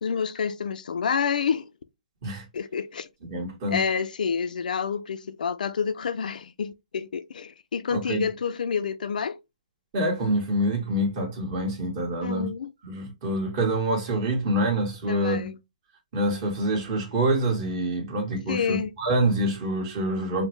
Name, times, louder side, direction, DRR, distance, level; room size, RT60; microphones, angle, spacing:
voice 1, 0.0-1.7 2.5-3.1 3.7-9.4 12.2-12.7 15.1-15.6 18.5-18.9, left 6 dB, 80° left, 0.4 m, -28 dB
voice 2, 3.2-3.8 7.9-8.2 9.9-12.5 12.8-15.5 16.1-20.4, right 1 dB, 40° right, 1.5 m, -26 dB
4.2 x 2.1 x 3.1 m
hypercardioid pair, 155°, 4 cm